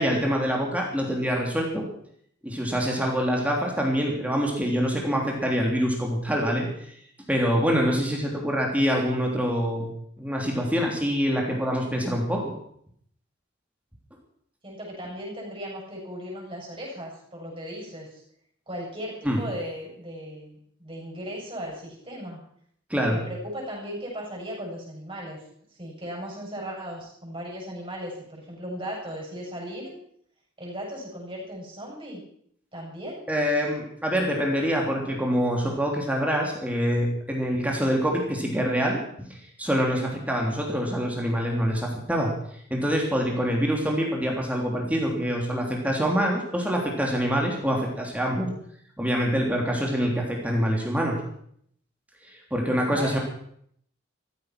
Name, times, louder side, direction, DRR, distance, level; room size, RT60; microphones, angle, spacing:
voice 1, 0.0-1.8 2.4-6.9 7.3-9.9 10.2-12.5 19.2-19.4 22.9-23.2 33.3-39.3 39.6-42.3 42.7-48.5 49.0-51.2 52.2-53.2, equal, 5° right, -1 dB, 3.2 m, -25 dB
voice 2, 14.6-18.2 18.7-22.4 23.1-25.4 25.7-29.9 30.6-32.2 32.7-33.2 52.9-53.2, equal, 25° right, -2 dB, 7.4 m, -37 dB
15.5 x 14.5 x 6.1 m, 0.66 s
head